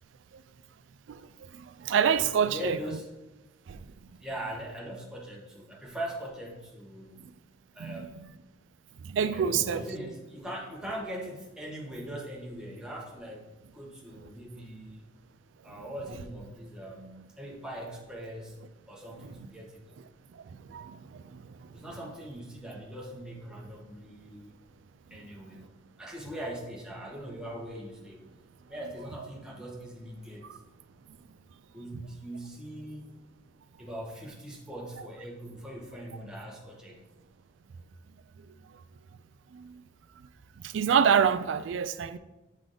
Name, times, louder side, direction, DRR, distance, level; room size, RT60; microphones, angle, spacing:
voice 1, 1.9-2.8 7.8-8.0 9.1-9.8 20.7-20.9 40.7-42.2, right 7 dB, 80° right, 12 dB, 0.3 m, -25 dB
voice 2, 2.5-3.1 4.2-7.2 7.7-8.3 9.2-15.0 15.6-18.5 18.9-19.8 21.7-24.5 25.1-25.7 26.0-28.2 28.7-30.4 31.7-33.1 33.8-37.0, equal, 5° right, -3 dB, 0.9 m, -41 dB
7.4 x 3.4 x 3.8 m, 1.1 s
head